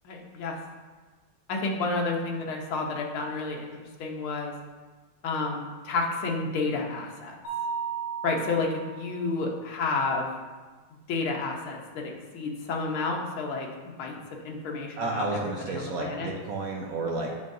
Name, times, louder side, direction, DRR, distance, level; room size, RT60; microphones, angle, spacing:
voice 1, 0.1-0.6 1.5-4.5 5.2-7.4 8.2-10.3 10.9-13.7 14.0-14.1 14.4-16.3, left 3 dB, 75° left, 0 dB, 1.7 m, -30 dB
Mallet percussion, 7.4-9.2, right 7 dB, 50° left, 2.4 m, -34 dB
voice 2, 15.0-17.4, right 3 dB, 70° right, 0 dB, 0.8 m, -31 dB
9.0 x 5.4 x 2.6 m, 1.3 s
omnidirectional pair, 2.4 m